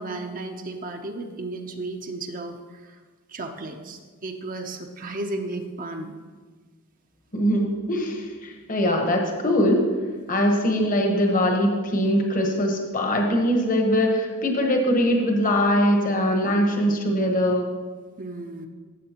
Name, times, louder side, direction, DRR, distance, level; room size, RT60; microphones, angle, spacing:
voice 1, 0.0-3.0 3.3-6.2 18.2-18.7, right 2 dB, 35° right, 4 dB, 0.6 m, -34 dB
voice 2, 7.3-9.9 10.3-17.7, equal, 35° left, 2 dB, 1.1 m, -22 dB
14.5 x 7.5 x 2.9 m, 1.5 s
head